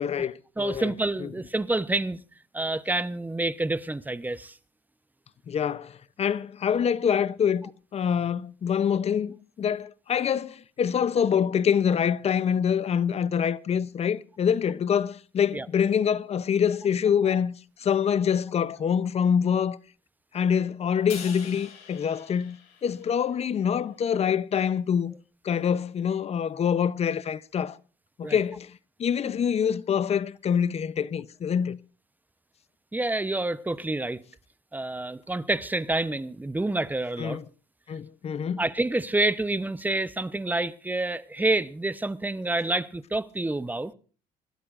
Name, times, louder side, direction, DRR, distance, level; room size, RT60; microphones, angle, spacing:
voice 1, 0.0-0.9 1.2-1.3 5.5-17.5 17.8-19.8 20.3-22.6 22.8-25.1 25.4-27.8 28.2-31.8 37.2-37.4 37.9-38.6, left 7 dB, 40° left, 0.7 m, -25 dB
voice 2, 0.6-2.2 2.5-4.6 15.5-15.7 28.2-28.4 29.6-29.7 32.9-34.2 34.7-37.4 38.6-43.9, right 2 dB, 10° right, 0.8 m, -28 dB
Crash cymbal, 21.1-23.5, left 8 dB, 80° left, 5.2 m, -44 dB
26.5 x 13.0 x 2.5 m
cardioid pair, 110°, 17 cm